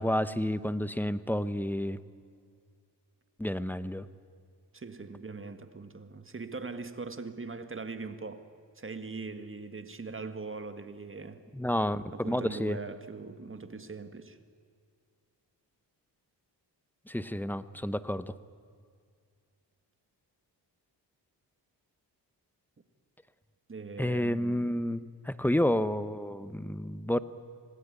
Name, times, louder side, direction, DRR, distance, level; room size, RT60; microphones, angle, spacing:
voice 1, 0.0-2.0 3.4-4.1 11.5-12.8 17.1-18.3 24.0-27.2, left 1 dB, 5° left, 0.9 m, -30 dB
voice 2, 4.7-8.5 8.8-11.4 12.1-14.4 23.7-24.8, right 4 dB, 30° right, 1.8 m, -41 dB
26.5 x 19.5 x 9.6 m
cardioid pair, 90°, 43 cm